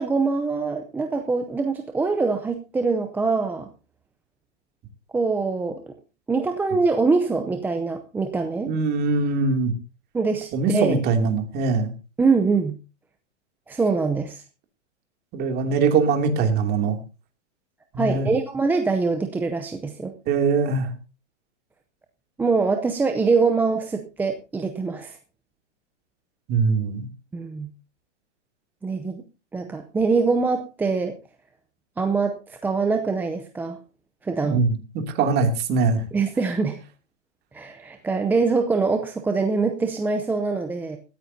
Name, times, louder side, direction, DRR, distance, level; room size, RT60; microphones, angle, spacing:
voice 1, 0.0-3.7 5.1-5.9 6.3-8.7 10.1-11.0 12.2-12.8 13.7-14.4 18.0-20.1 22.4-25.2 27.3-27.7 28.8-29.2 29.5-31.2 32.0-33.8 34.2-34.6 36.1-36.8 37.5-41.0, right 4 dB, 5° right, 5 dB, 0.6 m, -24 dB
voice 2, 8.7-9.7 10.5-11.9 15.3-17.0 17.9-18.3 20.3-20.9 26.5-27.1 34.4-36.0, right 4 dB, 25° right, 5 dB, 2.7 m, -22 dB
19.5 x 14.0 x 2.7 m, 0.32 s
hypercardioid pair, 145°, 36 cm